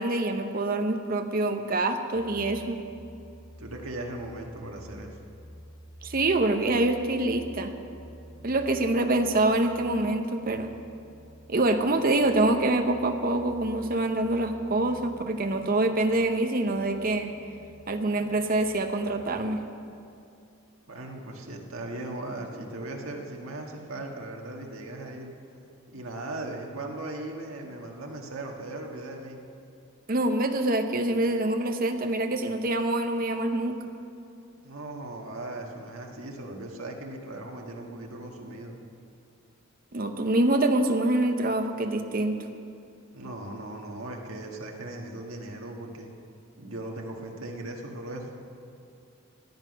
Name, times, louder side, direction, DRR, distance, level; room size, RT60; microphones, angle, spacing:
voice 1, 0.0-2.8 6.0-7.7 8.4-10.7 11.5-17.3 17.9-19.6 30.1-33.7 39.9-42.4, right 2 dB, 40° right, 6 dB, 0.8 m, -25 dB
sound 1, 2.1-19.4, equal, 15° right, 1.6 m, -50 dB
voice 2, 3.6-5.1 20.9-25.3 25.9-29.4 34.6-38.8 43.1-46.1 46.6-48.4, right 2 dB, 75° right, 1 dB, 1.6 m, -38 dB
16.5 x 9.6 x 5.3 m, 2.6 s
head